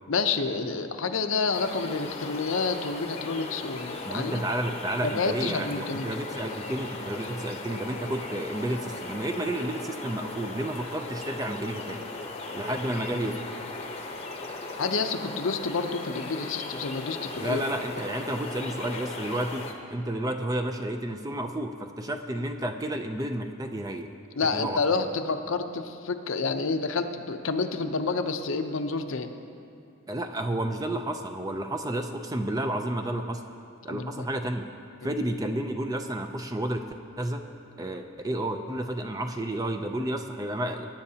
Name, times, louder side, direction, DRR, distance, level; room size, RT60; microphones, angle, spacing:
voice 1, 0.1-4.4 5.0-6.1 14.8-17.6 24.4-29.3 33.9-34.3 35.0-35.1, left 4 dB, 65° left, 7 dB, 0.7 m, -29 dB
sound 1, 1.5-19.7, left 3 dB, 30° left, 0.8 m, -37 dB
voice 2, 4.0-12.0 12.5-13.4 17.4-24.1 24.5-24.8 30.1-33.4 33.8-34.6 35.0-36.8 37.2-37.4 37.8-40.9, right 1 dB, 15° right, 5 dB, 0.5 m, -31 dB
22.0 x 10.5 x 2.8 m, 2.5 s
head